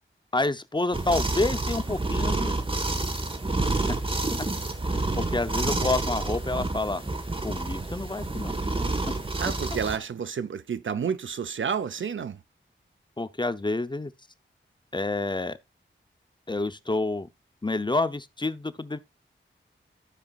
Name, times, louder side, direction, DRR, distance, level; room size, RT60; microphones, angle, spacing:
voice 1, 0.3-2.5 5.1-7.0 7.4-8.5 13.2-14.1 14.9-15.6 16.5-17.3 17.6-19.0, left 2 dB, 20° left, 0.7 m, -28 dB
sound 1, 0.9-10.0, right 2 dB, 25° right, 1.4 m, -28 dB
voice 2, 9.4-12.4, right 7 dB, 75° right, 0.6 m, -30 dB
15.0 x 5.0 x 2.4 m
wide cardioid pair, 65°, 20 cm